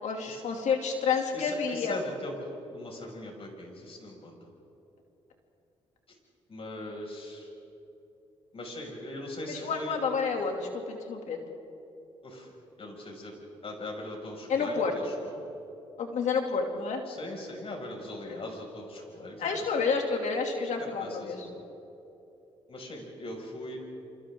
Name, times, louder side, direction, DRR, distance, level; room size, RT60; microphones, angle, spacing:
voice 1, 0.0-2.0 9.5-11.4 14.5-14.9 16.0-17.0 18.2-18.4 19.4-21.5, left 5 dB, 70° left, 2 dB, 2.9 m, -29 dB
voice 2, 1.3-2.4 2.7-4.4 6.5-7.5 8.5-10.0 12.2-12.5 12.8-13.3 13.6-15.4 17.1-19.5 20.8-21.6 22.7-23.8, left 1 dB, 50° left, 0 dB, 6.5 m, -40 dB
29.0 x 25.0 x 3.9 m, 2.9 s
supercardioid pair, 60°, 12 cm